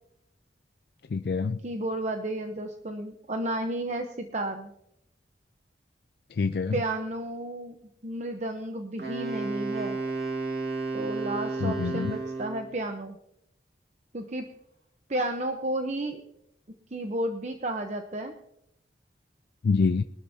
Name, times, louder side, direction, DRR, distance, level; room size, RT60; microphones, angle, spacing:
voice 1, 1.1-1.6 6.3-6.8 11.6-12.2 19.6-20.0, left 4 dB, 60° left, 11 dB, 0.4 m, -26 dB
voice 2, 1.6-4.7 6.7-10.0 10.9-13.2 14.1-14.5 15.1-16.2 16.9-18.3, right 1 dB, 40° right, 5 dB, 0.9 m, -32 dB
Wind instrument woodwind instrument, 9.0-12.7, right 3 dB, 65° right, 2.8 m, -32 dB
22.0 x 13.0 x 2.8 m, 0.78 s
head